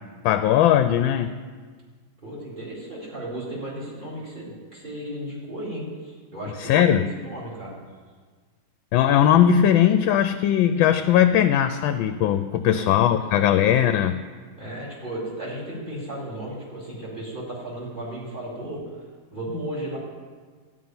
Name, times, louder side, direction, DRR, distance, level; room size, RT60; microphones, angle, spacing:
voice 1, 0.2-1.3 6.6-7.0 8.9-14.1, left 10 dB, 75° left, 10 dB, 1.2 m, -19 dB
voice 2, 2.2-7.7 12.7-13.6 14.6-18.8 19.3-20.0, right 1 dB, 20° right, -6 dB, 4.2 m, -35 dB
13.5 x 5.7 x 9.6 m, 1.5 s
omnidirectional pair, 2.3 m